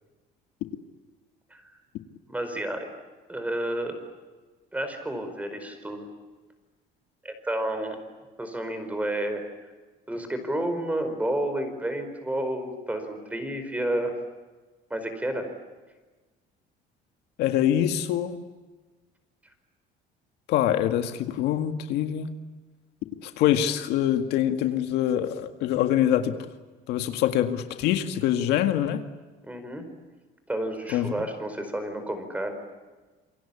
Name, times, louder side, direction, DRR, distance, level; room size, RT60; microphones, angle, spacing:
voice 1, 2.3-2.9 3.3-4.0 4.7-6.1 7.2-8.0 8.4-9.4 10.1-14.2 14.9-15.5 29.4-29.9 30.5-32.5, right 1 dB, 10° right, 7 dB, 4.8 m, -30 dB
voice 2, 17.4-18.4 20.5-22.3 23.2-26.4 26.9-29.0 30.9-31.1, left 11 dB, 75° left, 7 dB, 2.0 m, -24 dB
28.0 x 24.0 x 8.6 m, 1.3 s
cardioid pair, 145°, 17 cm